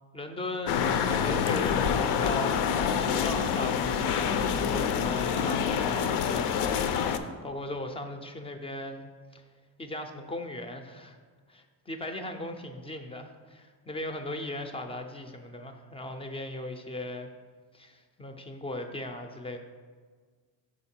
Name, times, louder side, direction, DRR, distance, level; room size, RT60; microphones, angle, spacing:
voice 1, 0.1-9.4 9.8-11.2 11.5-17.3 17.7-19.6, left 1 dB, 15° left, 6 dB, 0.3 m, -38 dB
sound 1, 0.7-7.2, left 7 dB, 70° left, 0.5 m, -27 dB
5.8 x 4.4 x 4.3 m, 1.5 s
cardioid pair, 115°, 44 cm